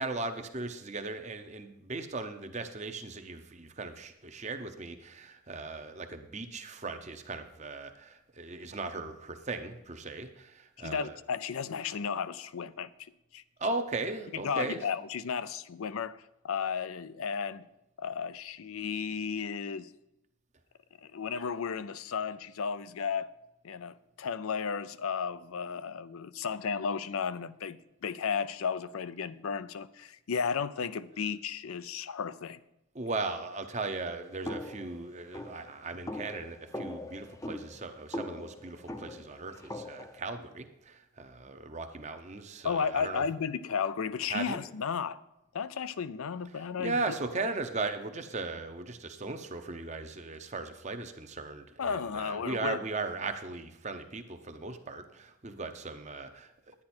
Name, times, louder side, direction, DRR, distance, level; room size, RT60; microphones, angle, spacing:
voice 1, 0.0-11.2 13.6-14.8 32.9-43.2 44.3-44.6 46.5-56.8, right 3 dB, 30° right, 7 dB, 0.8 m, -37 dB
voice 2, 10.8-13.4 14.4-17.6 18.0-19.9 21.1-23.3 23.6-32.6 42.6-45.2 45.5-47.0 47.4-47.5 51.8-52.8, left 6 dB, 75° left, 16 dB, 0.5 m, -34 dB
sound 1, 34.4-40.2, left 1 dB, 15° left, 0.6 m, -41 dB
10.5 x 9.8 x 4.4 m, 0.89 s
head